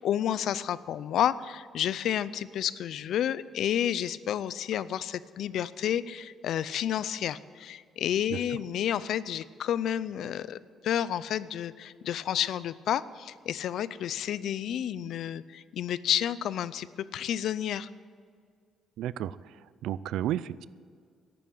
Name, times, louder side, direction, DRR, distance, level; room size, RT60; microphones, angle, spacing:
voice 1, 0.0-17.9, left 10 dB, 65° left, 17 dB, 0.5 m, -30 dB
voice 2, 19.0-19.4 19.8-20.7, right 12 dB, 85° right, 18 dB, 0.4 m, -31 dB
11.5 x 9.2 x 8.9 m, 2.1 s
cardioid pair, 135°, 0 cm